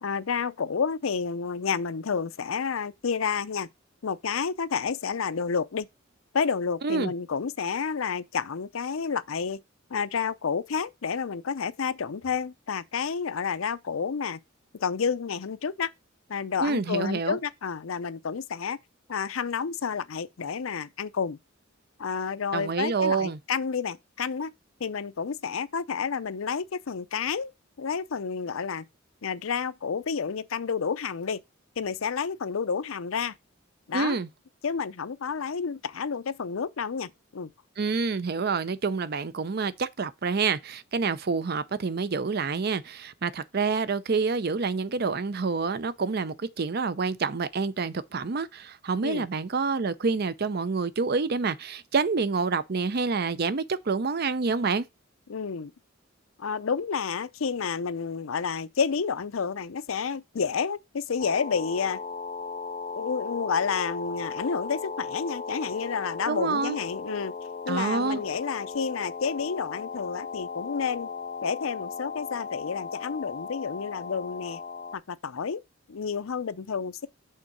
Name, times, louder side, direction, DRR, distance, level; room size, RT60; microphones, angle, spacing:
voice 1, 0.0-3.7 4.0-5.9 6.3-9.6 9.9-14.4 14.8-15.9 16.3-18.8 19.1-21.4 22.0-24.5 24.8-27.5 27.8-28.9 29.2-31.4 31.8-33.3 33.9-34.2 34.6-37.5 49.0-49.3 55.3-55.7 56.4-62.0 63.0-67.3 67.7-71.1 71.4-74.6 74.9-75.6 75.9-77.1, left 6 dB, 80° left, 0.6 m, -30 dB
voice 2, 16.6-17.4 22.5-23.4 33.9-34.3 37.8-54.9 66.3-66.8 67.7-68.2, right 4 dB, 50° right, 0.6 m, -27 dB
sound 1, 61.2-75.0, left 5 dB, 35° left, 0.6 m, -37 dB
6.5 x 3.8 x 6.0 m
head